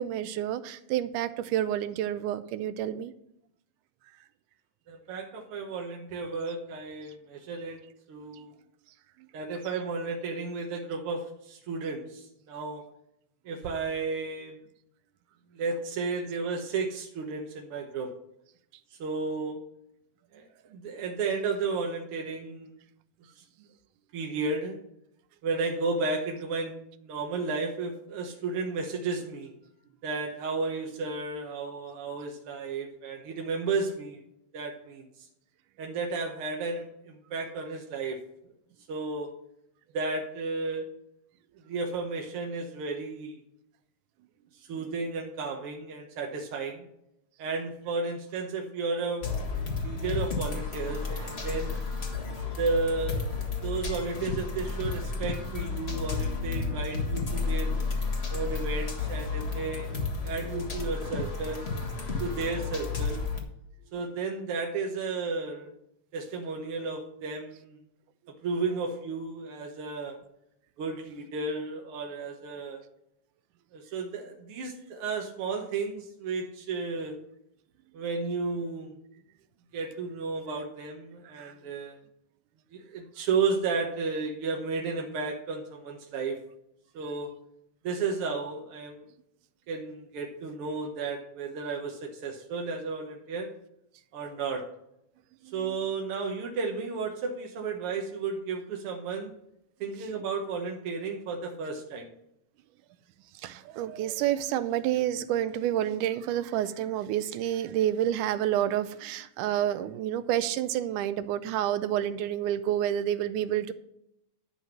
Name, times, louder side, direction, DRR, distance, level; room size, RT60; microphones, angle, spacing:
voice 1, 0.0-3.1 81.2-81.6 95.4-95.8 103.3-113.7, right 11 dB, 80° right, 13 dB, 2.0 m, -29 dB
voice 2, 4.9-7.8 8.1-8.6 9.3-12.8 13.4-14.6 15.5-18.1 18.9-19.6 20.3-22.7 24.1-24.8 25.4-29.5 30.0-34.2 34.5-35.3 35.8-38.2 38.9-39.3 39.9-40.9 41.6-43.4 44.7-46.8 47.4-49.3 49.7-51.8 52.6-53.2 53.6-57.8 58.3-59.9 60.2-61.7 62.2-63.2 63.9-65.7 66.1-67.8 68.4-70.1 70.8-72.8 73.7-77.2 77.9-78.9 79.7-82.0 82.7-86.4 86.9-87.3 87.8-89.1 89.7-93.5 94.1-94.6 95.5-99.3 99.8-102.1, right 4 dB, 65° right, 1 dB, 1.5 m, -33 dB
sound 1, 49.2-63.4, left 4 dB, 40° left, 0.8 m, -32 dB
11.5 x 5.5 x 6.0 m, 0.77 s
omnidirectional pair, 3.9 m